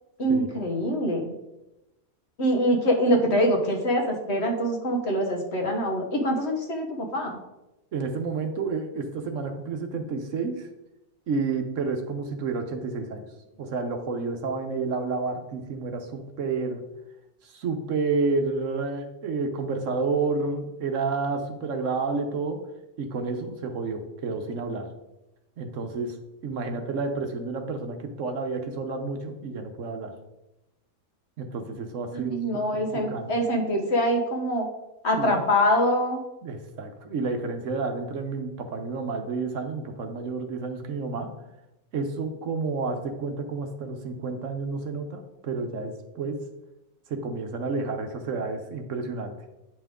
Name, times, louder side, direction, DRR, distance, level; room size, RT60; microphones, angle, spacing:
voice 1, 0.2-1.2 2.4-7.4 32.1-34.6 35.0-36.2, equal, 50° left, 1 dB, 1.4 m, -24 dB
voice 2, 7.9-10.7 11.3-13.3 13.6-16.8 17.4-22.6 23.0-24.9 25.6-26.2 26.4-30.2 31.4-33.3 35.2-35.4 36.4-41.4 41.9-46.4 47.1-49.3, right 4 dB, 65° right, 6 dB, 1.1 m, -30 dB
8.9 x 5.6 x 3.6 m, 0.95 s
omnidirectional pair, 1.5 m